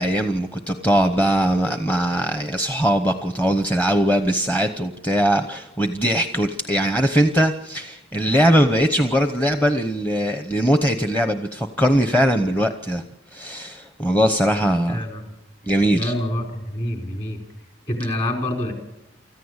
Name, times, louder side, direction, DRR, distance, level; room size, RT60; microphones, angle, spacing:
voice 1, 0.0-13.0 13.3-15.0 15.6-16.1, equal, 10° left, 7 dB, 0.9 m, -20 dB
voice 2, 14.9-15.4 15.9-17.4 17.9-18.7, left 1 dB, 35° left, 3 dB, 4.7 m, -26 dB
25.0 x 14.5 x 8.2 m, 0.94 s
head